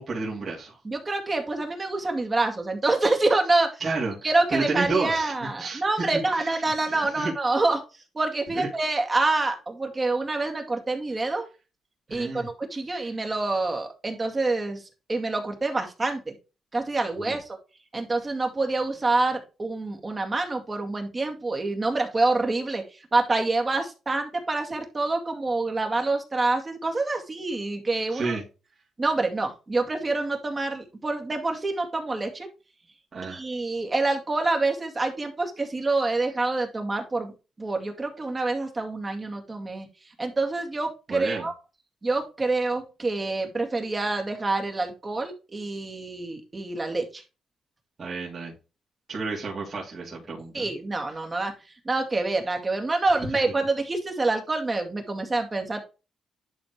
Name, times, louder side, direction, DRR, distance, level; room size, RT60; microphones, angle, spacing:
voice 1, 0.0-0.8 3.8-5.8 6.1-7.3 8.5-8.7 12.1-12.5 12.9-13.1 17.2-17.4 28.1-28.4 33.1-33.4 41.1-41.5 48.0-48.5 49.1-50.7 53.3-53.4, right 3 dB, 45° right, -5 dB, 2.9 m, -31 dB
voice 2, 0.8-3.8 4.2-7.8 8.1-11.5 12.1-14.8 15.1-16.2 16.7-17.4 17.9-22.8 23.1-28.4 29.0-32.5 33.2-39.9 40.2-41.5 42.0-47.2 50.5-51.5 51.9-55.8, right 3 dB, 30° right, 3 dB, 2.2 m, -26 dB
11.0 x 4.4 x 3.2 m, 0.30 s
cardioid pair, 80°, 0 cm